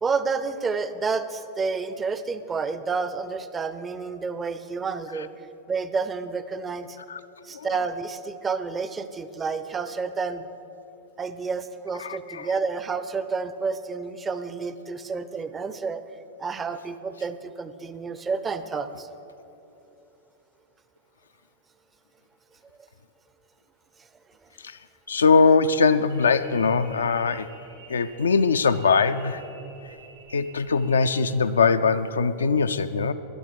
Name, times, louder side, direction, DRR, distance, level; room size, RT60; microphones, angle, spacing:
voice 1, 0.0-5.3 5.7-7.0 7.4-10.5 11.2-16.0 16.4-19.1, right 4 dB, 20° right, 12 dB, 0.5 m, -30 dB
voice 2, 12.0-12.5 24.6-24.8 25.1-27.5 27.9-29.4 30.3-33.1, left 5 dB, 70° left, 10 dB, 0.4 m, -21 dB
sound 1, 26.1-31.2, right 4 dB, 65° right, 2.6 m, -50 dB
11.5 x 10.5 x 6.4 m, 3.0 s
figure-of-eight pair, 90°, 0 cm